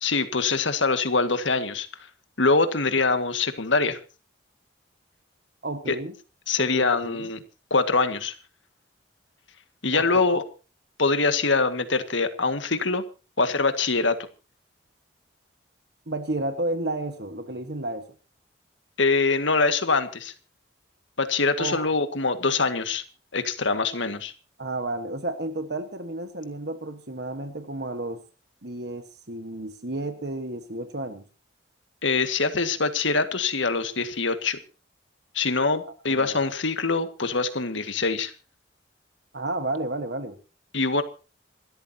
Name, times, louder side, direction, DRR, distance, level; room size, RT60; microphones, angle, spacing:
voice 1, 0.0-1.9 2.4-4.0 5.9-6.0 6.5-7.4 7.7-8.3 9.8-10.4 11.0-13.0 13.4-14.2 19.0-20.3 21.2-23.0 23.3-24.3 32.0-34.6 35.3-38.3 40.7-41.0, left 3 dB, 75° left, 9 dB, 1.9 m, -24 dB
voice 2, 5.6-6.1 6.6-7.3 9.9-10.3 16.1-18.0 21.6-21.9 24.6-28.2 28.6-31.2 35.8-36.5 39.3-40.4, right 2 dB, 55° right, 8 dB, 1.4 m, -32 dB
27.0 x 13.5 x 2.8 m, 0.34 s
head